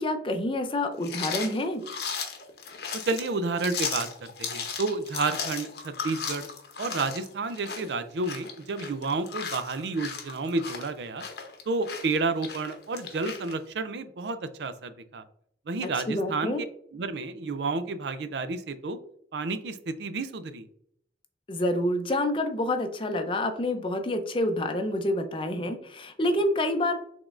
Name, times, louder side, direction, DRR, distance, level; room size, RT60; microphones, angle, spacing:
voice 1, 0.0-1.8 15.8-16.6 21.5-27.0, left 1 dB, 30° left, 6 dB, 0.5 m, -28 dB
sound 1, 1.0-13.5, left 6 dB, 65° left, 0.8 m, -36 dB
voice 2, 3.0-6.5 6.8-11.2 11.7-15.2 15.7-16.5 16.9-19.0 19.3-20.7, right 3 dB, 75° right, 11 dB, 0.4 m, -31 dB
5.0 x 3.6 x 2.5 m, 0.66 s
head